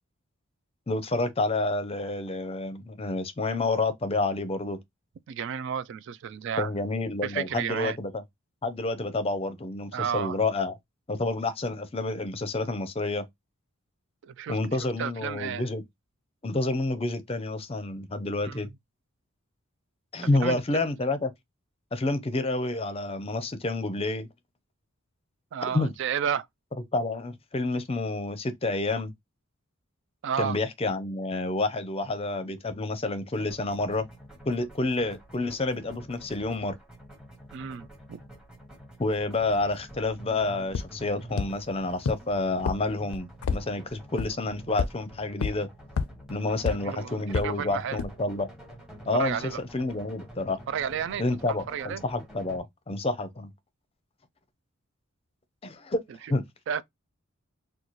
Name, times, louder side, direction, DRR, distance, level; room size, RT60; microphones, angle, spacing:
voice 1, 0.9-4.8 6.6-8.2 8.6-10.7 11.1-13.2 14.5-15.8 16.4-18.7 20.1-21.3 21.9-24.3 25.7-25.9 26.9-29.1 30.4-34.1 34.5-36.8 39.0-45.7 46.3-48.5 49.1-50.6 51.2-53.5 55.6-56.0 56.3-56.4, left 2 dB, 30° left, 0.5 m, -29 dB
voice 2, 5.3-6.7 7.2-8.0 9.9-10.4 14.3-14.6 15.0-15.7 18.4-18.7 20.4-20.6 25.5-26.5 30.2-30.6 37.5-38.2 46.7-47.1 47.4-48.0 49.1-49.6 50.7-52.0 56.7-56.8, right 8 dB, 60° right, 0.3 m, -32 dB
sound 1, 33.3-52.6, equal, 5° right, 0.9 m, -48 dB
sound 2, 40.7-40.8 41.4-41.5 42.1-42.2 42.7-42.8 43.1-43.6 44.2-44.3 44.8-44.9 45.4-45.5 46.0-46.1 46.7-46.8 47.3-47.4 48.0-48.1, left 5 dB, 80° left, 0.4 m, -26 dB
4.0 x 2.3 x 3.0 m
head